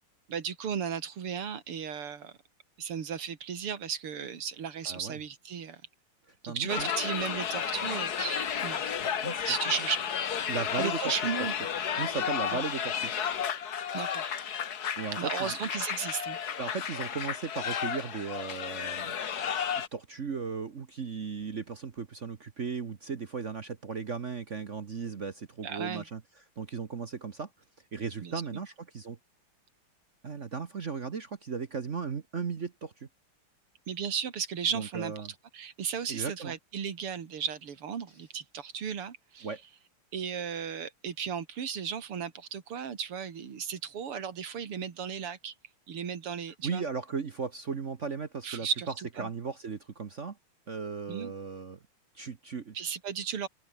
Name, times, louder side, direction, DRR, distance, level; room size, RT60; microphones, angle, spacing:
voice 1, 0.3-2.3 2.8-5.8 6.4-8.8 9.4-10.0 10.8-11.5 12.5-12.6 13.9-14.3 15.1-16.4 25.6-26.0 28.2-28.6 33.9-35.3 35.5-39.5 40.1-45.5 45.9-46.8 48.4-49.3 51.1-51.3 52.7-53.5, right 7 dB, 90° right, 3.1 m, -35 dB
voice 2, 4.8-5.2 6.4-6.9 9.1-9.5 10.5-11.3 12.0-13.1 15.0-15.6 16.6-19.2 19.9-26.2 26.6-27.5 27.9-29.2 30.2-33.1 34.7-35.3 36.1-36.5 39.4-39.6 46.6-48.7 49.2-50.4 50.7-51.8 52.1-52.7, right 5 dB, 40° right, 1.3 m, -36 dB
sound 1, 6.7-19.9, left 8 dB, 50° left, 1.7 m, -33 dB
omnidirectional pair, 2.4 m